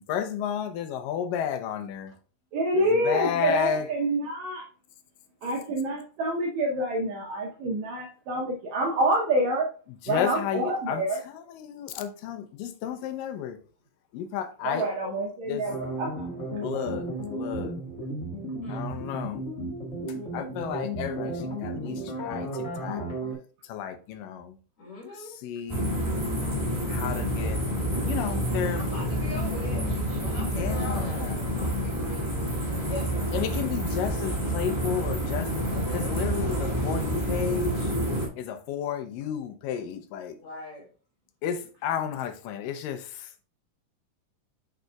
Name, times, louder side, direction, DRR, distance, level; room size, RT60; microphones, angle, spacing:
voice 1, 0.0-2.1 2.7-3.9 10.1-13.6 14.1-14.9 15.4-15.6 16.6-17.8 18.7-19.4 20.3-23.0 23.6-24.6 25.2-25.9 26.9-27.6 28.0-28.9 30.5-31.5 33.3-35.6 35.9-37.9 38.4-40.3 41.4-43.3, left 9 dB, 90° left, 2.4 m, -32 dB
voice 2, 2.5-4.6 5.4-9.7 10.1-11.2 14.6-16.3, right 1 dB, 65° right, 2.0 m, -27 dB
sound 1, 15.6-23.3, right 1 dB, 40° left, 1.0 m, -34 dB
voice 3, 18.6-18.9 24.8-25.3 28.2-28.3 28.7-31.2 31.5-32.5 32.8-33.0 35.6-36.1 40.4-40.8, left 2 dB, 55° left, 3.5 m, -41 dB
sound 2, 25.7-38.3, equal, 15° right, 1.2 m, -28 dB
6.5 x 6.4 x 2.3 m
omnidirectional pair, 3.8 m